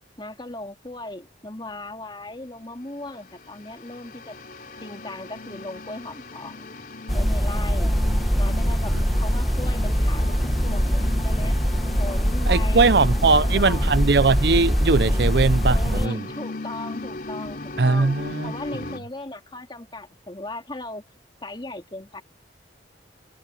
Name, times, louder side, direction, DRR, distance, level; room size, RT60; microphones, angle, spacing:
voice 1, 0.2-4.4 4.8-6.7 7.1-8.0 8.4-11.6 12.0-13.9 15.7-18.2 18.4-21.0 21.4-22.2, left 2 dB, 25° left, 2.9 m, -37 dB
sound 1, 3.4-19.0, left 2 dB, 50° left, 4.0 m, -37 dB
sound 2, 7.1-16.1, equal, ahead, 1.6 m, -22 dB
voice 2, 12.5-16.3 17.8-18.5, right 4 dB, 60° right, 0.6 m, -20 dB
head